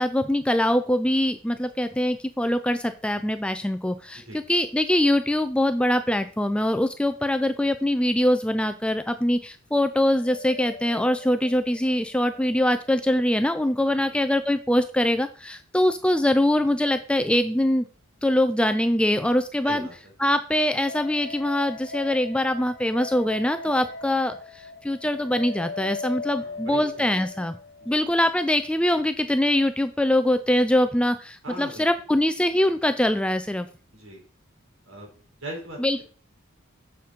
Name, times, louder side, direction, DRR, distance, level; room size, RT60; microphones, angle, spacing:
voice 1, 0.0-4.2 4.5-17.9 18.2-19.9 20.2-27.6 27.9-33.7 35.8-36.0, left 1 dB, 5° left, 10 dB, 0.3 m, -23 dB
sound 1, 10.1-13.3 13.5-13.6 20.8-28.8, left 3 dB, 45° left, 1.0 m, -39 dB
voice 2, 26.4-27.1 31.4-31.8 33.9-34.2 34.9-35.1 35.4-36.0, right 1 dB, 70° right, 0 dB, 3.9 m, -39 dB
6.9 x 6.6 x 5.1 m, 0.41 s
head